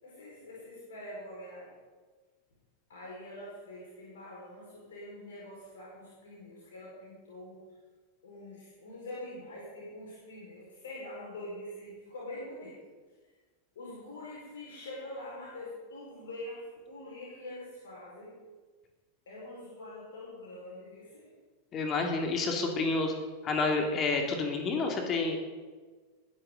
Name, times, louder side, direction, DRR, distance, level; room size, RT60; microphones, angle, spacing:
voice 1, 0.0-1.7 2.9-7.6 8.2-12.8 13.7-18.3 19.2-21.3, left 1 dB, 65° left, -5 dB, 5.0 m, -44 dB
voice 2, 21.7-23.1 23.4-25.4, left 3 dB, 30° left, 3 dB, 2.4 m, -29 dB
20.5 x 10.5 x 3.9 m, 1.4 s
figure-of-eight pair, 90°, 0 cm